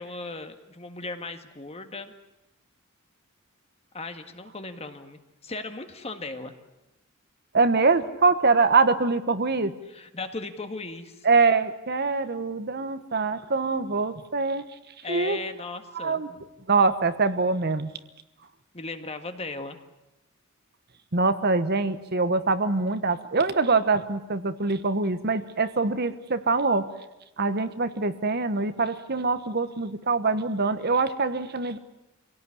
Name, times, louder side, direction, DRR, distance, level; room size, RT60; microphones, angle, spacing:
voice 1, 0.0-2.1 3.9-6.5 9.9-11.3 15.0-16.4 18.7-19.8, left 3 dB, 30° left, 7 dB, 1.9 m, -37 dB
voice 2, 7.5-9.7 11.2-14.6 15.1-15.4 15.9-16.3 16.7-17.9 21.1-26.9 27.4-31.8, right 4 dB, 50° right, 11 dB, 1.3 m, -24 dB
26.0 x 17.5 x 10.0 m, 0.94 s
head